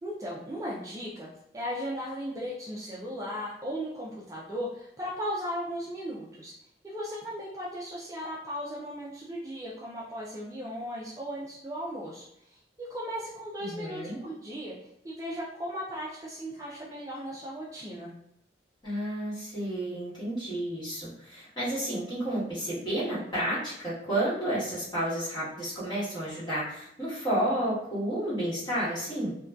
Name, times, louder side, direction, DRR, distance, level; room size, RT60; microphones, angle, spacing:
voice 1, 0.0-1.3 1.5-6.5 6.8-18.1, equal, 20° right, -5 dB, 0.3 m, -37 dB
voice 2, 13.6-14.2 18.8-29.3, right 1 dB, 25° left, -10 dB, 1.2 m, -31 dB
2.5 x 2.2 x 2.2 m, 0.76 s
head